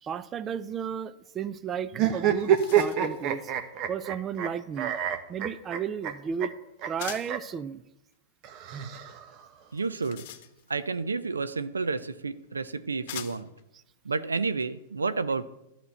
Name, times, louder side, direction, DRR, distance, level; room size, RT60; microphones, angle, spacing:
voice 1, 0.0-3.5 3.9-4.9 5.3-6.5 6.8-7.8, right 7 dB, 25° right, 15 dB, 0.5 m, -33 dB
sound 1, 1.9-2.0 2.2-3.2 7.0-7.4 9.7-10.9 12.0-12.1 13.1-13.6, left 12 dB, 55° left, 1.0 m, -43 dB
sound 2, 1.9-4.5 4.8-6.1 6.4-6.5 6.8-6.9 7.2-7.4 8.4-9.4, right 9 dB, 40° right, 1.2 m, -27 dB
voice 2, 9.7-10.2 10.7-13.5 14.0-15.5, right 4 dB, 90° right, 13 dB, 0.6 m, -30 dB
12.0 x 6.1 x 8.0 m, 0.89 s
hypercardioid pair, 105°, 0 cm